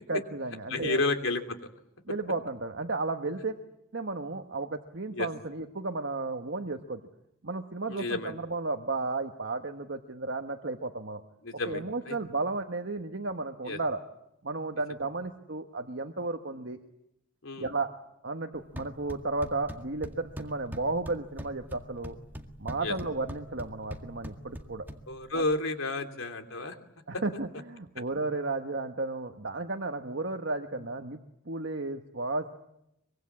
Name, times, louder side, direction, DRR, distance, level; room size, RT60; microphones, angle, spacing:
voice 1, 0.1-1.0 2.1-3.5 3.9-7.0 7.4-11.2 11.6-14.0 14.4-16.8 17.6-17.9 18.2-22.2 22.6-24.9 25.3-25.4 27.1-31.2 31.4-32.5, right 3 dB, 60° right, 5 dB, 1.3 m, -33 dB
voice 2, 0.7-1.4 5.1-5.3 7.9-8.3 11.4-11.8 12.1-12.2 13.7-13.8 17.4-17.7 22.8-22.9 25.1-26.7 27.1-27.2, left 2 dB, 85° left, 5 dB, 3.0 m, -31 dB
sound 1, 18.5-25.5, equal, 10° right, 1.9 m, -43 dB
24.0 x 23.5 x 8.5 m, 0.83 s
head